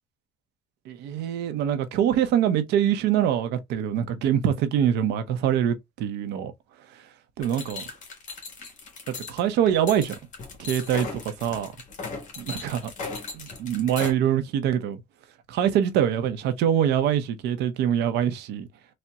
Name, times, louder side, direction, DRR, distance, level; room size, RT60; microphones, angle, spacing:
voice 1, 0.9-6.5 7.4-7.9 9.1-10.1 10.6-11.7 12.4-12.8 13.3-15.0 15.5-18.7, right 9 dB, 85° right, 0.7 m, -24 dB
sound 1, 7.4-14.1, left 4 dB, 50° left, 1.2 m, -37 dB
4.1 x 2.1 x 2.2 m
cardioid pair, 110°, 17 cm